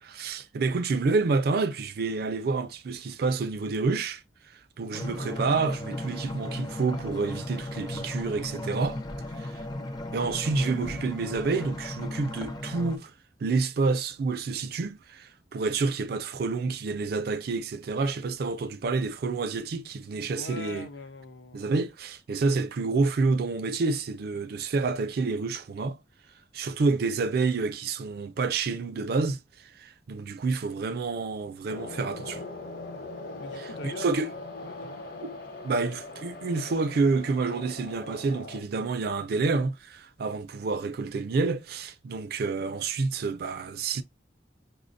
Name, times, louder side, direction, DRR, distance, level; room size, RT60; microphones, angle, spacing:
voice 1, 0.0-4.2 4.5-9.0 9.4-9.6 10.1-13.1 13.4-20.9 21.5-26.0 26.5-32.4 33.6-34.3 35.2-35.3 35.6-44.0, right 4 dB, 55° right, 0.4 m, -28 dB
sound 1, 4.9-13.0, left 1 dB, 25° left, 0.4 m, -36 dB
voice 2, 20.3-21.7 33.4-34.2 34.6-35.0 35.6-35.8, left 3 dB, 80° left, 0.6 m, -42 dB
sound 2, 31.7-38.6, left 2 dB, 55° left, 0.9 m, -41 dB
5.5 x 2.1 x 2.5 m
head